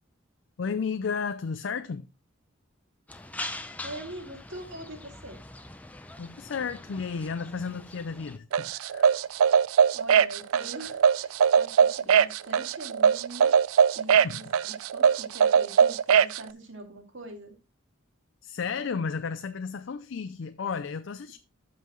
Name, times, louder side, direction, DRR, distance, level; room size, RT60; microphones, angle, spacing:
voice 1, 0.6-2.1 6.2-9.1 14.2-14.6 18.4-21.4, left 5 dB, 60° left, 0.4 m, -33 dB
sound 1, 3.1-8.4, left 2 dB, 5° left, 0.6 m, -42 dB
voice 2, 3.8-5.4 9.9-13.5 14.0-17.5, right 1 dB, 60° right, 2.4 m, -43 dB
sound 2, 8.5-16.4, right 7 dB, 80° right, 0.4 m, -21 dB
13.0 x 5.6 x 3.1 m
head